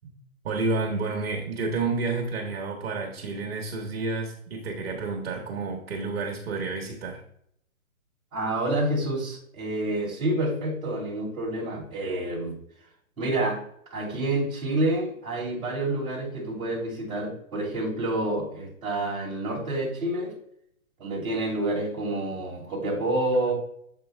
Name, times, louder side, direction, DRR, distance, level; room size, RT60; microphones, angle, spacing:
voice 1, 0.4-7.2, right 3 dB, 45° right, 0 dB, 1.2 m, -30 dB
voice 2, 8.3-12.6 13.2-13.6 13.9-20.3 21.0-23.5, right 1 dB, 10° right, -5 dB, 1.8 m, -28 dB
7.3 x 5.1 x 3.3 m, 0.69 s
hypercardioid pair, 160°, 42 cm